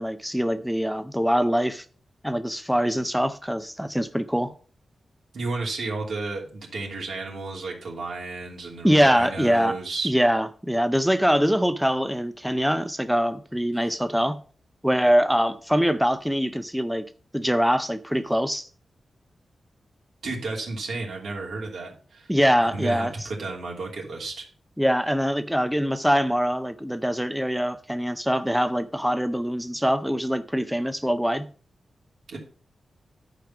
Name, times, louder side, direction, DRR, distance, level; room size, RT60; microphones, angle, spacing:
voice 1, 0.0-1.8 2.2-4.5 8.8-9.7 10.0-14.4 14.8-17.1 17.3-18.7 22.3-23.1 24.8-31.5, equal, ahead, 0.5 m, -23 dB
voice 2, 5.3-10.1 13.8-13.9 20.2-22.3 22.6-24.5 32.3-32.4, right 3 dB, 75° right, 3.0 m, -32 dB
11.0 x 5.2 x 5.9 m
wide cardioid pair, 165°, 0 cm